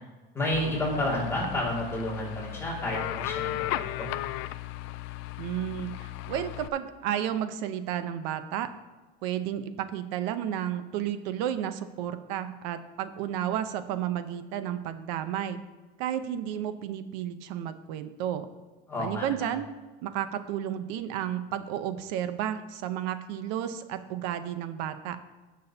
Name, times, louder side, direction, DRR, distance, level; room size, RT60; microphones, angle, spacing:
voice 1, 0.3-4.1 18.9-19.5, left 1 dB, 10° left, -5 dB, 2.4 m, -30 dB
sound 1, 0.5-6.7, left 15 dB, 60° left, 0.4 m, -35 dB
voice 2, 5.4-8.7 9.2-15.6 16.0-18.5 19.0-19.7 20.0-25.2, right 10 dB, 80° right, 10 dB, 0.9 m, -32 dB
16.5 x 6.4 x 2.8 m, 1.2 s
cardioid pair, 170°, 21 cm